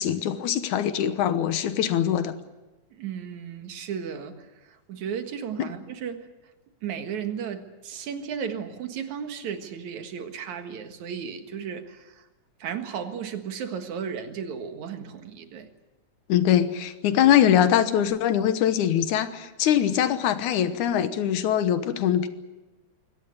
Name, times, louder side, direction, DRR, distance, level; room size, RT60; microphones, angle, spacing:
voice 1, 0.0-2.3 5.6-5.7 16.3-22.3, left 10 dB, 80° left, 11 dB, 2.6 m, -22 dB
voice 2, 2.9-6.3 6.8-12.3 12.6-15.7, right 7 dB, 75° right, 7 dB, 3.0 m, -34 dB
23.5 x 18.0 x 9.6 m, 1.1 s
omnidirectional pair, 3.4 m